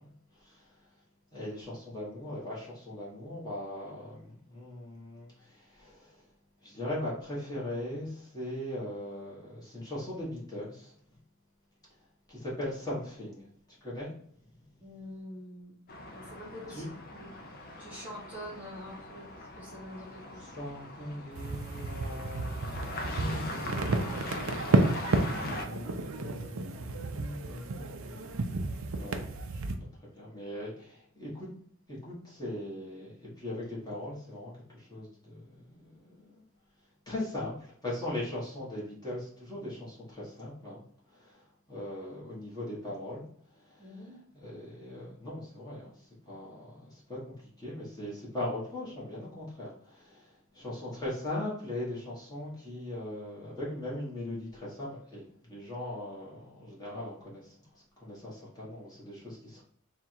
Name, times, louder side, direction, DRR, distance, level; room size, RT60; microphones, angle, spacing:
voice 1, 1.3-6.1 6.6-10.9 12.3-13.5 13.8-14.1 16.7-16.9 20.6-22.6 23.0-24.3 25.3-28.5 28.9-29.6 30.0-31.5 31.9-36.4 37.1-40.8 41.2-41.4 41.7-43.2 43.8-44.0 44.4-45.9 46.3-57.5 58.0-59.6, left 1 dB, 20° left, -7 dB, 1.4 m, -39 dB
voice 2, 14.8-15.7 16.0-16.9 17.1-17.3 17.8-19.3 19.6-20.7 43.8-44.1, equal, 10° right, -6 dB, 1.3 m, -45 dB
sound 1, 15.9-25.7, left 1 dB, 45° left, 0.5 m, -41 dB
sound 2, 21.4-29.7, right 2 dB, 65° right, 0.5 m, -31 dB
3.6 x 2.5 x 4.4 m, 0.65 s
head